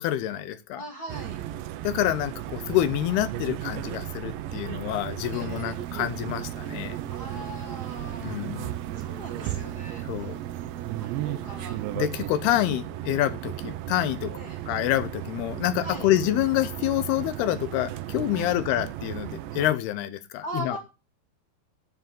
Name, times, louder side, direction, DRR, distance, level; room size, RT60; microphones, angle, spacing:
voice 1, 0.0-0.8 1.8-7.0 8.2-8.7 10.1-10.4 12.0-14.3 14.7-20.8, left 13 dB, 80° left, 2.5 m, -27 dB
voice 2, 0.7-1.4 5.3-5.8 7.1-8.4 9.0-10.3 11.0-11.8 14.2-14.6 15.8-16.1 18.3-18.6 20.4-20.8, right 1 dB, 30° left, 2.4 m, -40 dB
sound 1, 1.1-19.7, right 13 dB, 90° right, 3.2 m, -35 dB
sound 2, 5.7-12.0, right 10 dB, 75° right, 3.0 m, -43 dB
9.9 x 7.4 x 7.5 m
omnidirectional pair, 5.0 m